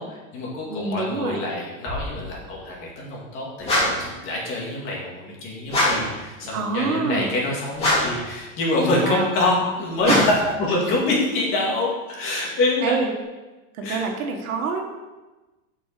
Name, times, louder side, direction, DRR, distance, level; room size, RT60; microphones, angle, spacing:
voice 1, 0.0-10.2 10.6-12.9 13.8-14.0, left 2 dB, 30° left, -3 dB, 2.2 m, -26 dB
voice 2, 0.7-1.4 6.5-7.3 9.0-9.3 10.1-10.2 12.8-13.1 13.7-14.9, right 4 dB, 85° right, 3 dB, 1.9 m, -26 dB
sound 1, 1.9-3.8, left 1 dB, 5° right, 1.4 m, -38 dB
sound 2, 3.6-4.1 5.7-6.1 7.7-8.2 10.0-10.5, left 1 dB, 15° left, 2.9 m, -22 dB
7.4 x 5.5 x 6.7 m, 1.2 s
supercardioid pair, 165°, 40 cm